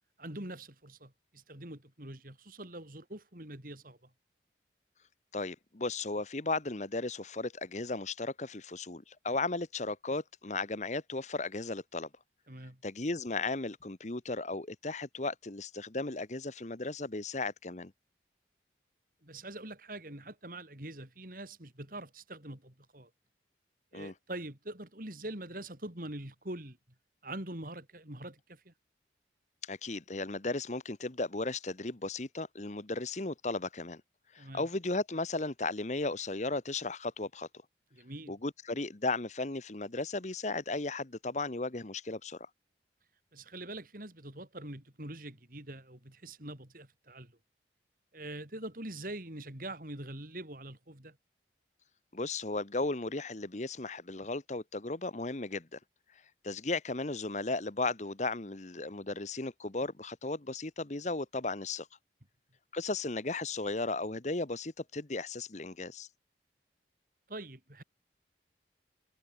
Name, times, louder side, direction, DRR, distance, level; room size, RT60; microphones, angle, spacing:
voice 1, 0.2-4.1 12.5-12.8 19.2-23.1 23.9-26.8 27.2-28.7 34.4-34.7 37.9-38.4 43.3-47.4 48.1-51.2 67.3-67.8, right 1 dB, 50° right, 4.2 m, -44 dB
voice 2, 5.3-12.1 12.8-17.9 23.9-24.1 29.6-34.0 34.3-37.5 38.3-42.5 52.1-55.8 56.4-61.9 62.7-66.1, left 3 dB, 40° left, 1.1 m, -35 dB
head